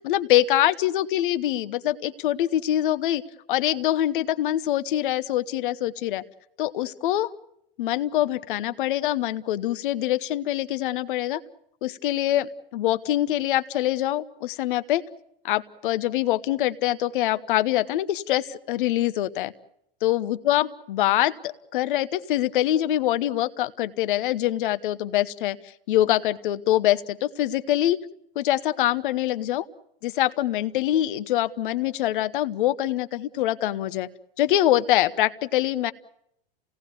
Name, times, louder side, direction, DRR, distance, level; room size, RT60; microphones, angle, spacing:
voice 1, 0.0-3.2 3.5-6.2 6.6-7.3 7.8-11.4 11.8-15.0 15.4-19.5 20.0-25.6 25.9-28.0 28.3-29.6 30.0-34.1 34.4-35.9, left 13 dB, 60° left, 13 dB, 1.1 m, -24 dB
28.0 x 18.0 x 7.0 m, 0.76 s
hypercardioid pair, 105°, 29 cm